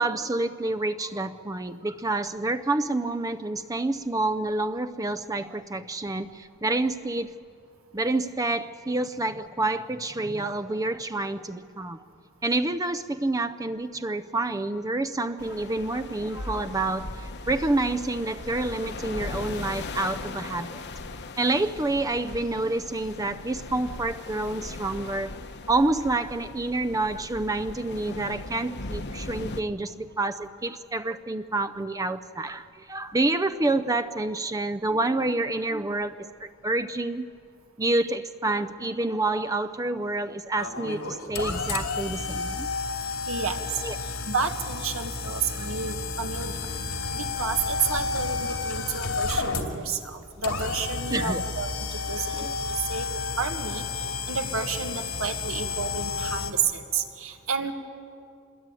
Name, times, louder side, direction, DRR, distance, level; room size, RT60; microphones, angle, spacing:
voice 1, 0.0-7.3 7.9-12.0 12.4-20.8 21.4-25.3 25.7-37.3 37.8-42.7 43.8-44.0 45.6-45.7 51.1-51.4 52.2-52.5, right 2 dB, 15° right, 11 dB, 0.5 m, -28 dB
sound 1, 15.4-29.6, left 2 dB, 55° left, 1.1 m, -38 dB
sound 2, 40.6-56.5, left 4 dB, 85° left, 2.8 m, -31 dB
voice 2, 43.3-43.8 44.2-46.5 47.1-51.7 52.1-52.5 52.9-53.1 53.4-57.7, right 5 dB, 80° right, 5 dB, 2.0 m, -31 dB
26.5 x 21.5 x 9.1 m, 2.4 s
head